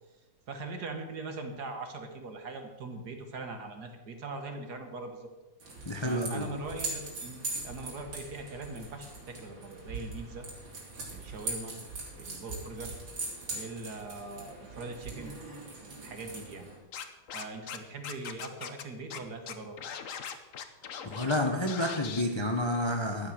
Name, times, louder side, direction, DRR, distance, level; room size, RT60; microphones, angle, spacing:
voice 1, 0.5-5.3 6.0-10.5 11.1-11.9 12.2-12.9 13.5-15.3 16.0-16.7 17.3-19.8, right 3 dB, 55° right, 5 dB, 2.0 m, -41 dB
sound 1, 5.6-16.8, right 3 dB, 90° right, 3.9 m, -41 dB
voice 2, 5.9-6.5 21.0-23.3, left 1 dB, 25° left, 3 dB, 0.7 m, -30 dB
Scratching (performance technique), 16.9-17.8 18.0-18.8 19.1-19.2 19.5-21.4 21.7-22.2, left 8 dB, 55° left, 1.0 m, -40 dB
12.5 x 8.9 x 6.7 m, 1.1 s
omnidirectional pair, 2.1 m